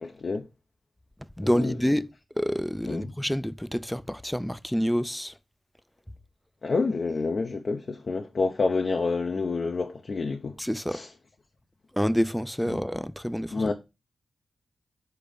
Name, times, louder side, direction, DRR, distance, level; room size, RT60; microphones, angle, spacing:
voice 1, 0.0-0.5 1.5-1.7 2.9-3.1 6.6-10.6 10.9-11.1 12.7-12.8 13.5-13.7, left 4 dB, 55° left, 0.7 m, -28 dB
voice 2, 1.4-2.1 2.4-5.3 10.6-11.0 11.9-13.7, equal, 5° left, 0.5 m, -27 dB
6.9 x 3.9 x 5.0 m
wide cardioid pair, 90°, 0 cm